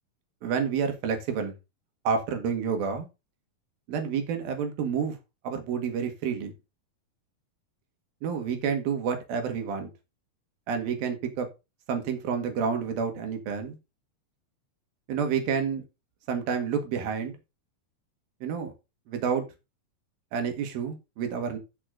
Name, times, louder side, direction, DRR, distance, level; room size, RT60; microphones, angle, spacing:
voice 1, 0.4-1.6 2.1-3.1 3.9-5.2 5.4-6.5 8.2-9.9 10.7-11.5 11.9-13.8 15.1-15.8 16.3-17.3 18.4-18.7 19.1-19.5 20.3-21.6, right 6 dB, 80° right, 5 dB, 3.7 m, -29 dB
13.0 x 6.2 x 3.8 m, 0.26 s
omnidirectional pair, 4.1 m